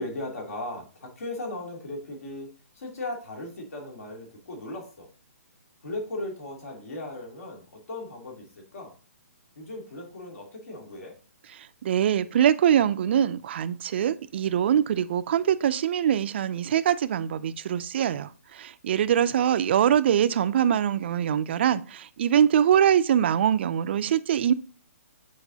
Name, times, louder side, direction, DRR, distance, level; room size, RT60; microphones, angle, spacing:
voice 1, 0.0-2.5 2.7-5.1 5.8-9.0 9.6-11.1, left 2 dB, 70° left, 0 dB, 2.6 m, -37 dB
voice 2, 11.5-24.5, right 9 dB, 45° right, 13 dB, 0.4 m, -23 dB
8.0 x 4.7 x 2.7 m, 0.37 s
hypercardioid pair, 155°, 8 cm